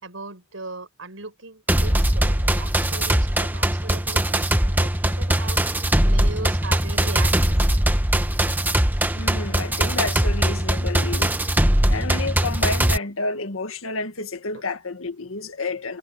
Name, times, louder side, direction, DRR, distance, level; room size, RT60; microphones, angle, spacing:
voice 1, 0.0-5.6 6.0-7.6 14.5-14.6, right 3 dB, 75° right, 5.4 m, -38 dB
sound 1, 1.7-13.0, right 1 dB, 10° right, 1.2 m, -21 dB
voice 2, 9.1-11.4 11.9-16.0, left 3 dB, 90° left, 1.9 m, -30 dB
head